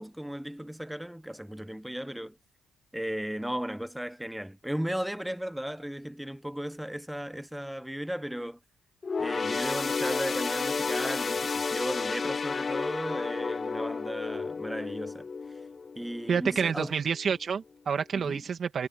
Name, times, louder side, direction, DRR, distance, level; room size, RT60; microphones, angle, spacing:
voice 1, 0.0-2.4 2.9-8.6 9.2-15.3 15.9-17.0 18.1-18.4, equal, 5° right, 1.3 m, -35 dB
sound 1, 9.0-16.7 17.1-17.3 18.2-18.3, left 4 dB, 35° left, 0.4 m, -32 dB
voice 2, 16.3-18.9, right 6 dB, 50° right, 2.2 m, -28 dB
cardioid pair, 90°, 0 cm